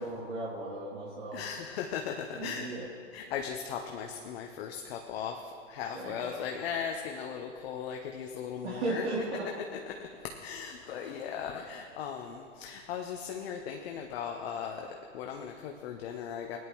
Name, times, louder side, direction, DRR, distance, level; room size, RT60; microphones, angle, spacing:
voice 1, 0.0-1.4 2.4-2.9 5.9-6.4 8.6-9.4, right 2 dB, 60° right, -6 dB, 3.3 m, -36 dB
voice 2, 1.3-2.6 3.1-5.4 5.7-9.0 9.8-9.9 10.3-16.6, left 7 dB, 50° left, 2 dB, 1.1 m, -38 dB
18.0 x 10.5 x 3.2 m, 2.3 s
hypercardioid pair, 125°, 38 cm